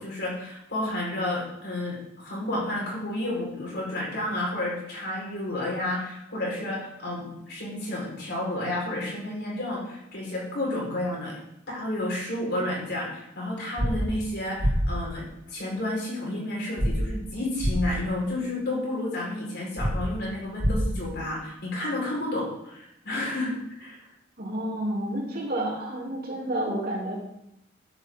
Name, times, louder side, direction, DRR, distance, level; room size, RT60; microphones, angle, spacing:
voice 1, 0.0-11.4 11.7-24.0, left 1 dB, 55° left, -3 dB, 4.7 m, -31 dB
sound 1, 13.8-13.9 14.6-14.7 16.8-16.9 17.6-17.7 19.8-19.9 20.6-20.7, equal, 35° right, 1.6 m, -24 dB
voice 2, 24.4-27.1, right 1 dB, 50° right, -3 dB, 3.0 m, -30 dB
13.5 x 8.0 x 3.7 m, 0.82 s
head